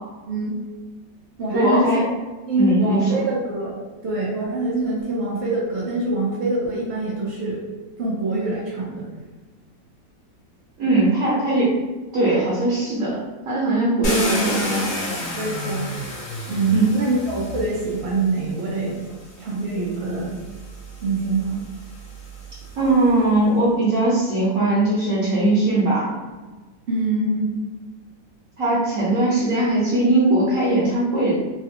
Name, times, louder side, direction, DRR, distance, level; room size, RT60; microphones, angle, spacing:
voice 1, 0.3-0.6 1.4-1.9 2.5-3.8 4.0-7.6 8.0-9.0 14.1-14.2 15.4-15.9 16.5-19.0 19.4-20.4 21.0-21.6 26.9-27.5, right 2 dB, 75° right, -5 dB, 0.6 m, -24 dB
voice 2, 1.5-2.0 2.6-3.2 10.8-11.7 12.1-13.2 13.4-14.8 16.7-16.8 22.8-26.1 28.6-31.3, right 2 dB, 55° right, -7 dB, 1.0 m, -20 dB
Car, 14.0-18.1 19.1-19.2 19.7-23.0, left 1 dB, 55° left, 1.1 m, -29 dB
3.3 x 2.4 x 2.7 m, 1.2 s
omnidirectional pair, 2.0 m